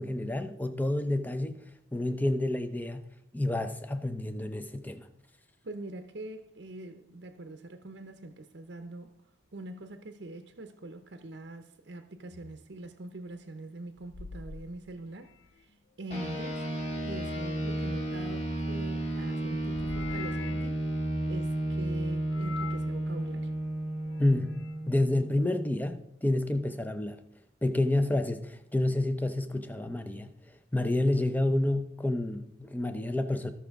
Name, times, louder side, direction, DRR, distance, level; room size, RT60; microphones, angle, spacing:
voice 1, 0.0-3.1 3.3-5.1 24.2-24.6 24.9-27.2 27.6-30.3 30.7-33.5, left 1 dB, 10° left, 0.6 m, -29 dB
voice 2, 5.6-9.1 9.5-15.3 15.6-16.7 17.0-20.9 21.3-23.5, right 2 dB, 60° right, 0.7 m, -43 dB
sound 1, 12.3-12.6 14.0-15.6 17.5-18.7 19.7-20.8 22.3-22.9 23.9-24.8, left 5 dB, 65° left, 0.5 m, -45 dB
sound 2, 16.1-25.8, right 1 dB, 35° left, 1.7 m, -33 dB
17.0 x 6.1 x 3.5 m
head